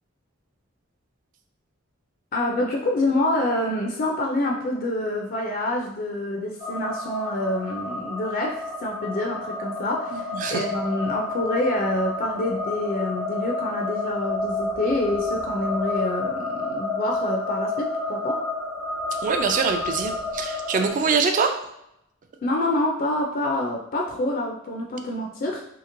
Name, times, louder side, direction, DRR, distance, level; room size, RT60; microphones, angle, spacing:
voice 1, 2.3-18.4 22.4-25.6, left 1 dB, 45° left, 0 dB, 0.4 m, -27 dB
sound 1, 6.6-20.9, left 2 dB, 70° right, 1.0 m, -30 dB
voice 2, 19.2-21.5, right 5 dB, 40° right, 6 dB, 0.3 m, -23 dB
2.8 x 2.8 x 2.5 m, 0.80 s
head